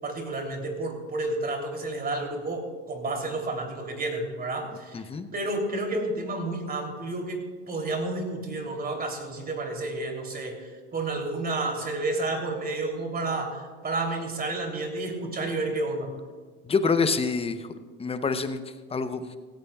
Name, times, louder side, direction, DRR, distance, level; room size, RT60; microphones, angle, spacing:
voice 1, 0.0-16.1, right 2 dB, 25° right, 2 dB, 3.2 m, -31 dB
voice 2, 4.9-5.3 16.6-17.7 18.0-18.6 18.9-19.4, left 4 dB, 15° left, 10 dB, 0.8 m, -26 dB
17.0 x 15.5 x 2.4 m, 1.5 s
supercardioid pair, 100°, 33 cm